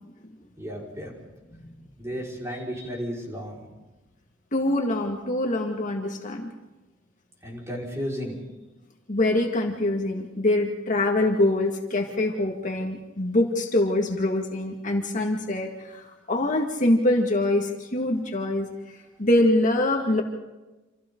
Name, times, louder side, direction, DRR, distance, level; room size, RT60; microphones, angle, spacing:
voice 1, 0.6-1.1 2.0-3.7 7.4-8.4, equal, 15° right, -3 dB, 5.1 m, -33 dB
voice 2, 4.5-6.5 9.1-18.7 19.2-20.2, left 1 dB, 40° left, 1 dB, 2.0 m, -24 dB
28.5 x 27.5 x 3.9 m, 1.1 s
head